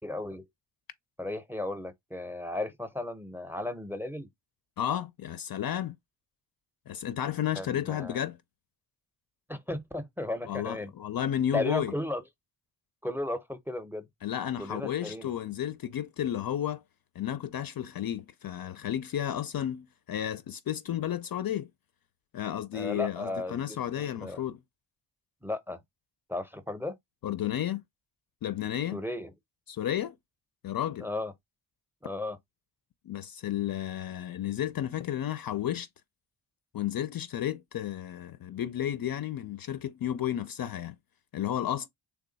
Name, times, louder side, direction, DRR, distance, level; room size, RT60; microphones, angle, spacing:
voice 1, 0.0-0.5 1.2-4.3 7.6-8.2 9.5-10.9 11.5-12.2 13.0-14.1 14.6-15.3 22.7-24.4 25.4-25.8 26.3-27.0 28.9-29.3 31.0-31.3 32.0-32.4, left 2 dB, 5° right, 0.6 m, -35 dB
voice 2, 4.8-6.0 6.9-8.4 10.5-11.9 14.2-16.8 17.2-21.7 22.3-24.6 27.2-27.8 28.4-29.0 29.7-30.2 30.6-31.1 33.0-35.9 36.7-41.0 41.3-41.9, left 11 dB, 55° left, 0.4 m, -32 dB
3.5 x 2.3 x 3.9 m
cardioid pair, 75°, 45 cm